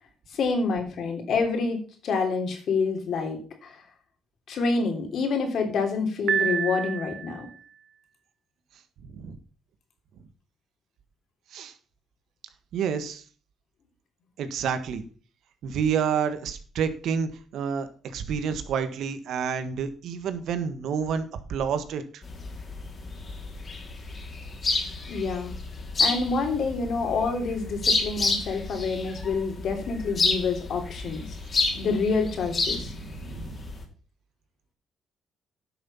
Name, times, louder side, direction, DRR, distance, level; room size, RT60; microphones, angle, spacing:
voice 1, 0.3-1.8 2.0-3.8 4.5-7.5 25.1-25.5 26.0-31.3 31.7-32.9, left 4 dB, 65° left, 4 dB, 3.4 m, -27 dB
Piano, 6.3-7.6, right 8 dB, 60° right, 0.5 m, -28 dB
voice 2, 9.0-9.4 11.5-11.7 12.7-13.2 14.4-15.0 15.6-21.2 21.5-22.2 32.8-33.6, right 7 dB, 75° right, 10 dB, 1.5 m, -29 dB
sound 1, 22.2-33.8, left 3 dB, 40° left, 2.9 m, -30 dB
11.0 x 6.3 x 5.6 m, 0.40 s
cardioid pair, 90°, 0 cm